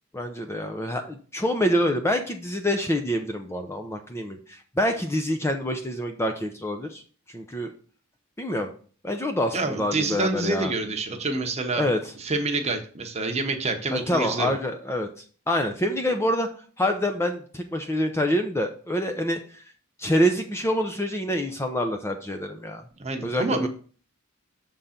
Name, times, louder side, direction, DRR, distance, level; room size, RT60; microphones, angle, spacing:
voice 1, 0.1-7.0 7.3-7.7 8.4-8.7 9.0-10.7 11.8-12.0 13.9-15.1 15.5-16.5 16.8-19.6 20.0-22.8 23.2-23.7, equal, 10° left, 5 dB, 0.6 m, -26 dB
voice 2, 9.5-11.9 12.2-14.5 23.0-23.7, right 3 dB, 30° right, 4 dB, 0.9 m, -27 dB
6.7 x 3.8 x 5.7 m, 0.41 s
head